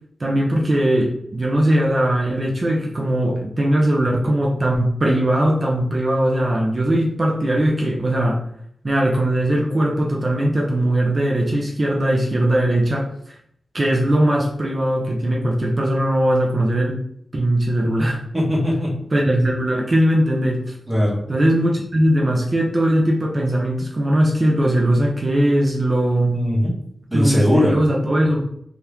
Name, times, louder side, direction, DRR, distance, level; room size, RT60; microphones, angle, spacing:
voice 1, 0.2-8.4 8.8-13.4 13.7-17.0 17.3-18.2 19.1-20.7 21.3-26.4 27.1-28.4, right 1 dB, 30° right, -1 dB, 0.4 m, -19 dB
voice 2, 18.3-19.1 20.9-21.2 26.3-26.7 27.1-27.7, equal, 10° right, -4 dB, 0.9 m, -19 dB
2.8 x 2.3 x 3.3 m, 0.67 s
wide cardioid pair, 175°, 0 cm